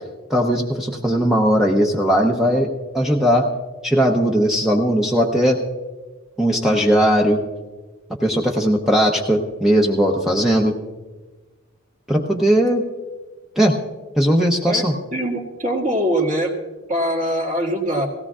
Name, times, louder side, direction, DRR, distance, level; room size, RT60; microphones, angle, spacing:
voice 1, 0.3-3.5 3.8-5.6 6.4-7.4 8.2-10.7 12.1-12.8 13.6-13.7 14.2-14.9, equal, ahead, -1 dB, 0.8 m, -18 dB
voice 2, 15.1-16.6 16.9-18.1, equal, 35° right, -2 dB, 1.8 m, -22 dB
18.0 x 16.5 x 2.4 m, 1.2 s
head